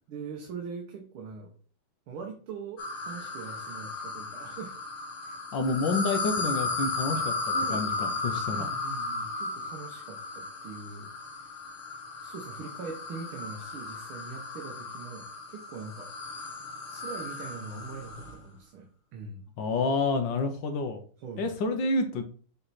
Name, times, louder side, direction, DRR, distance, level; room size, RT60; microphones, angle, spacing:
voice 1, 0.1-1.5 2.1-4.7 5.2-5.8 7.5-11.1 11.4-11.5 12.2-16.1 16.9-19.4 21.2-21.5, right 5 dB, 80° right, 1 dB, 1.9 m, -42 dB
sound 1, 2.8-18.4, left 3 dB, 90° left, 2.3 m, -35 dB
voice 2, 5.5-8.7 19.6-21.0 21.4-22.2, left 3 dB, 65° left, 6 dB, 1.5 m, -29 dB
7.7 x 3.4 x 4.1 m, 0.41 s
omnidirectional pair, 2.3 m